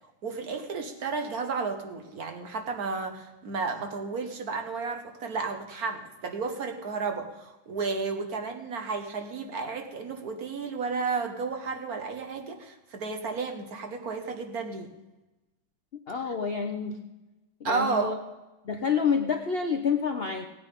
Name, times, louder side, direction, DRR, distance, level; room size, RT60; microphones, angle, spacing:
voice 1, 0.2-14.9 17.6-18.1, right 4 dB, 50° right, 6 dB, 1.4 m, -32 dB
voice 2, 16.1-17.0 17.6-18.2 18.6-20.4, left 6 dB, 60° left, 5 dB, 0.6 m, -28 dB
16.5 x 9.1 x 5.3 m, 1.1 s
omnidirectional pair, 2.2 m